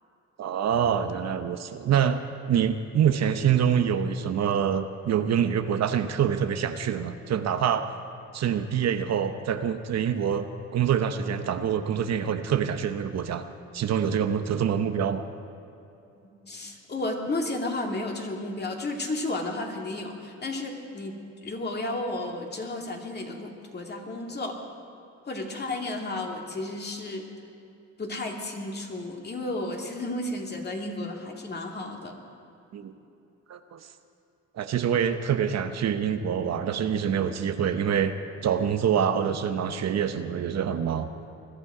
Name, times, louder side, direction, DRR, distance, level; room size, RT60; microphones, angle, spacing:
voice 1, 0.4-2.2 2.5-7.9 8.3-10.5 10.7-13.4 13.7-15.2 32.7-32.9 33.5-33.8 34.6-38.1 38.4-41.1, right 8 dB, 60° right, 8 dB, 0.9 m, -25 dB
voice 2, 16.4-21.2 21.4-24.6 25.2-27.2 28.0-32.2, left 2 dB, 35° left, 1 dB, 2.4 m, -33 dB
21.5 x 12.5 x 5.0 m, 2.7 s
cardioid pair, 90°, 30 cm